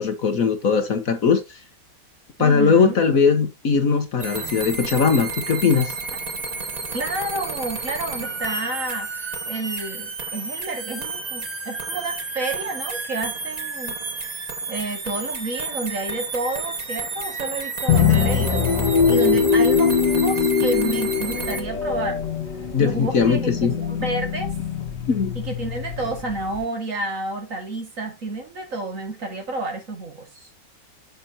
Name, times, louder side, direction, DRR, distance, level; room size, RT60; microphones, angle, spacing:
voice 1, 0.0-1.6 2.4-5.9 22.7-23.7 25.1-25.4, left 5 dB, 55° left, 1.3 m, -20 dB
voice 2, 2.4-3.0 6.9-14.2 14.7-22.2 22.8-24.5 25.4-30.5, right 2 dB, 45° right, 2.2 m, -30 dB
sound 1, 4.2-21.6, right 4 dB, 30° right, 0.9 m, -31 dB
sound 2, 17.9-26.6, left 6 dB, 70° left, 1.9 m, -22 dB
7.3 x 6.5 x 2.7 m
omnidirectional pair, 2.0 m